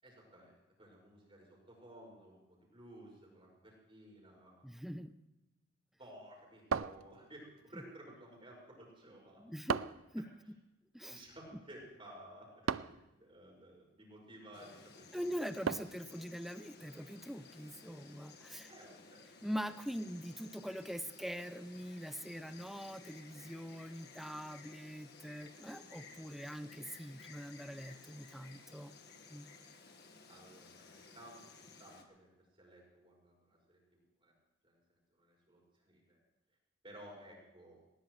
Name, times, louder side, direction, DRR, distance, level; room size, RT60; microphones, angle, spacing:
voice 1, 0.0-4.7 6.0-9.4 10.2-10.3 11.1-12.9 13.2-15.3 16.1-16.2 18.7-19.5 30.3-34.3 34.6-36.2 36.8-37.8, right 1 dB, 25° right, -2 dB, 5.9 m, -56 dB
voice 2, 4.6-5.1 9.4-9.8 10.1-10.6 10.9-11.2 15.1-18.7 19.4-28.9 29.3-29.5, equal, ahead, 11 dB, 0.6 m, -43 dB
sound 1, 6.7-7.6 9.7-10.1 12.7-13.1 15.7-16.1, right 6 dB, 70° right, 0.4 m, -36 dB
Insect, 14.5-32.0, left 4 dB, 50° left, 1.6 m, -57 dB
20.0 x 19.0 x 3.3 m, 0.99 s
head